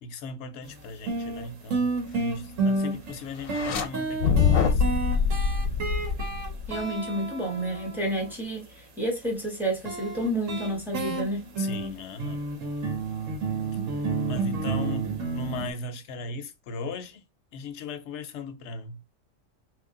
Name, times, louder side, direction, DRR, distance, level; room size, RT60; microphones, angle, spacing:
voice 1, 0.0-5.0 11.6-12.5 14.3-17.2 17.5-19.0, left 3 dB, 65° left, 0.9 m, -38 dB
sound 1, 0.6-0.7 1.1-8.3 9.9-15.7, right 3 dB, 75° right, 1.3 m, -30 dB
sound 2, 3.4-3.9 4.2-6.8, left 6 dB, 85° left, 1.1 m, -24 dB
voice 2, 6.7-11.5, right 1 dB, ahead, 0.9 m, -30 dB
3.1 x 2.7 x 3.7 m
omnidirectional pair, 1.4 m